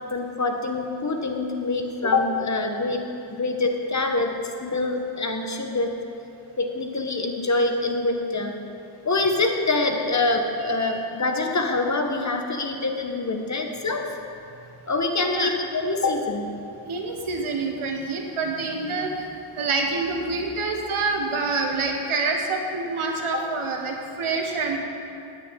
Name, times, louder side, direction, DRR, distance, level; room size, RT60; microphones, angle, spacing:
voice 1, 0.1-3.0 3.3-5.9 6.6-8.6 9.0-14.1 14.9-16.5, left 3 dB, 35° left, 3 dB, 1.5 m, -25 dB
voice 2, 16.9-19.3 19.6-24.8, right 3 dB, 85° right, 2 dB, 1.7 m, -27 dB
9.6 x 9.4 x 8.2 m, 2.6 s
cardioid pair, 70°, 48 cm